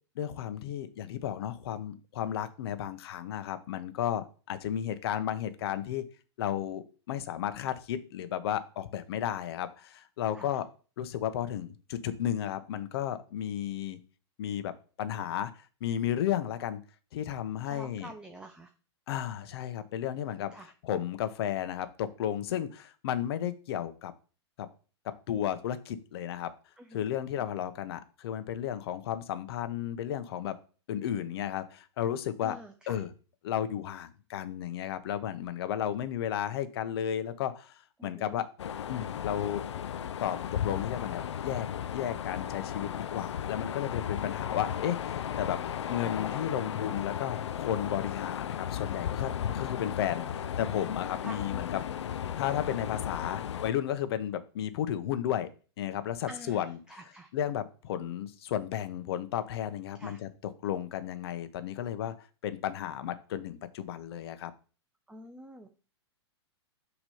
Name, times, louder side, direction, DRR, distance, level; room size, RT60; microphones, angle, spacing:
voice 1, 0.2-6.0 6.4-10.7 11.0-14.0 14.4-15.5 15.8-16.8 17.1-18.1 19.1-20.5 20.8-24.1 24.6-24.7 25.3-26.5 26.9-30.5 30.9-32.6 32.9-33.1 33.4-38.5 38.9-39.6 40.2-41.7 41.9-45.6 45.9-51.7 52.4-55.5 55.8-57.0 57.3-60.3 60.6-64.5, left 10 dB, 60° left, 11 dB, 0.9 m, -33 dB
voice 2, 17.6-18.7 20.5-20.7 26.8-27.0 27.4-27.6 32.4-33.0 38.0-38.4 49.5-49.6 51.2-51.4 56.3-57.3 60.0-60.2 65.1-65.7, right 1 dB, 5° right, 6 dB, 0.6 m, -47 dB
sound 1, 38.6-53.7, left 9 dB, 75° left, 0.4 m, -35 dB
6.1 x 3.1 x 5.5 m, 0.37 s
hypercardioid pair, 110°, 15 cm